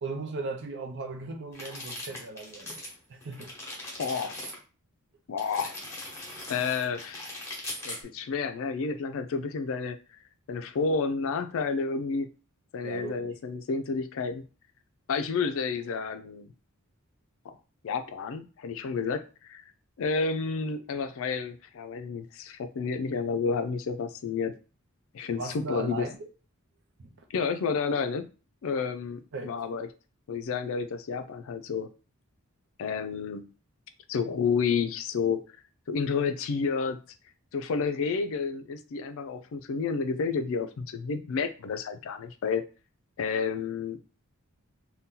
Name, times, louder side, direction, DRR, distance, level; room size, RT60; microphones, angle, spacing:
voice 1, 0.0-2.8 3.1-3.5 12.8-13.3 25.3-26.3 27.0-27.1 29.3-29.6, right 3 dB, 55° right, 0.6 m, -37 dB
sound 1, 1.5-3.0 3.2-4.6 5.4-8.0, left 1 dB, 10° left, 1.0 m, -40 dB
voice 2, 4.0-4.4 5.3-5.8 6.5-7.3 7.8-10.0 10.5-12.3 12.7-14.4 15.1-16.5 17.4-17.6 17.8-19.7 20.0-24.5 25.1-26.1 27.3-28.3 28.6-29.9 30.3-31.9 32.8-33.5 34.1-35.4 35.9-37.0 37.5-42.6 43.2-44.0, left 5 dB, 65° left, 0.4 m, -30 dB
2.7 x 2.2 x 3.6 m
head